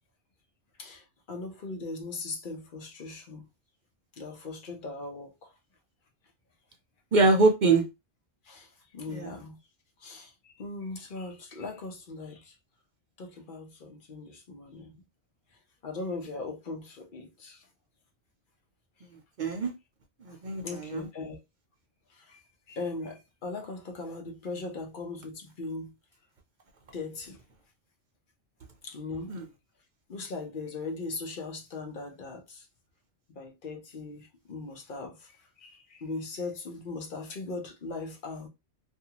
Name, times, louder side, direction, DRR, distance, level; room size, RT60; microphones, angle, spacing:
voice 1, 0.8-3.4 4.2-5.5 8.5-8.7 8.9-9.6 10.0-12.5 13.2-14.9 15.8-17.6 20.6-21.4 22.2-22.4 22.7-25.9 26.9-27.4 28.8-29.3 30.1-32.7 33.3-35.3 35.6-38.5, left 3 dB, 50° left, 0.9 m, -39 dB
voice 2, 7.1-7.8 9.1-9.3 19.4-19.7 20.3-21.0 29.3-29.4, right 3 dB, 50° right, 0.7 m, -23 dB
2.6 x 2.4 x 2.8 m
omnidirectional pair, 1.2 m